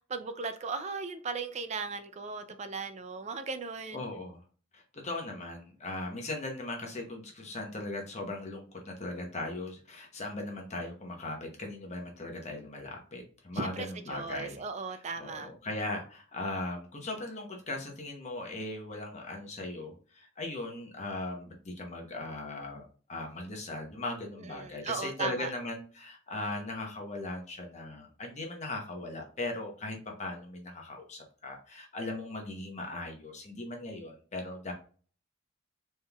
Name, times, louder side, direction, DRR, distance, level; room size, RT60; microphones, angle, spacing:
voice 1, 0.1-4.0 13.5-15.5 24.6-25.5, right 4 dB, 35° right, 0.4 m, -37 dB
voice 2, 3.9-4.4 4.7-14.6 14.9-34.7, left 2 dB, 35° left, 0.9 m, -38 dB
4.2 x 3.6 x 2.3 m
head